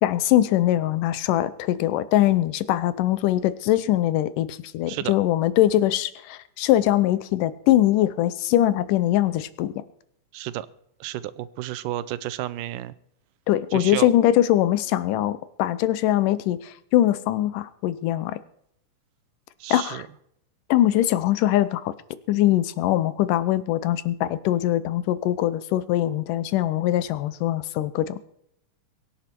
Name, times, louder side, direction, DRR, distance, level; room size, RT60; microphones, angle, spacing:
voice 1, 0.0-9.7 13.5-18.4 19.7-20.0 20.7-21.9 22.3-28.2, left 13 dB, 90° left, 15 dB, 2.4 m, -22 dB
voice 2, 10.3-10.7 11.0-12.9 13.7-14.1 19.6-20.1, right 14 dB, 90° right, 16 dB, 2.3 m, -31 dB
23.0 x 9.8 x 4.5 m, 0.72 s
omnidirectional pair, 3.6 m